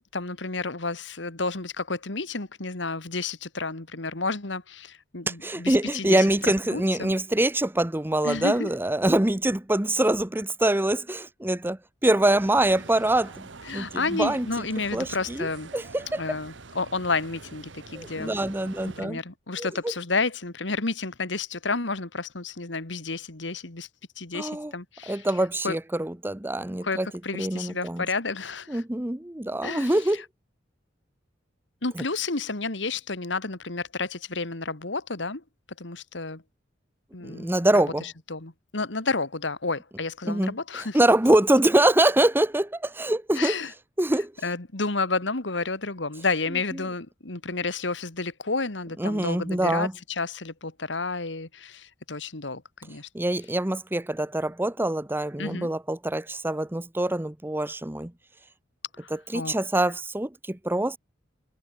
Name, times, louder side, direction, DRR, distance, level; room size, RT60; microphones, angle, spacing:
voice 1, 0.1-7.1 8.2-8.7 13.6-15.7 16.2-18.4 18.8-23.9 24.2-25.3 25.6-25.8 26.8-28.8 29.6-30.2 31.8-35.4 35.8-36.4 37.1-41.0 43.4-43.7 44.4-53.1 55.4-55.7 58.9-59.5, left 3 dB, 70° left, 2.1 m, -31 dB
voice 2, 5.3-14.5 14.9-15.5 15.7-16.2 17.9-19.2 19.6-19.7 24.3-24.7 25.1-27.1 27.3-28.0 28.7-30.2 37.2-38.0 40.3-40.5 40.9-43.5 44.0-44.3 49.0-49.9 53.1-58.1 59.3-61.0, right 1 dB, 10° right, 0.8 m, -24 dB
sound 1, 12.4-19.0, right 3 dB, 75° right, 1.5 m, -45 dB
head